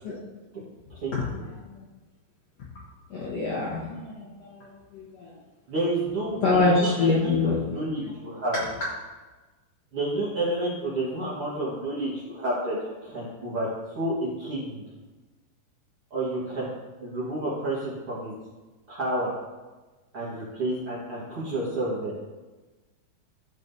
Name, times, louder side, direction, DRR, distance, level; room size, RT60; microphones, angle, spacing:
voice 1, 1.1-1.8 3.1-5.3 6.4-7.6 8.0-8.1 8.5-8.7, left 3 dB, 60° left, -6 dB, 1.7 m, -26 dB
voice 2, 5.7-8.6 9.9-13.7 13.9-14.8 16.1-16.7 17.0-18.3 18.9-19.3 20.1-22.1, right 1 dB, 50° right, -8 dB, 1.8 m, -30 dB
13.0 x 6.2 x 2.7 m, 1.2 s
omnidirectional pair, 4.5 m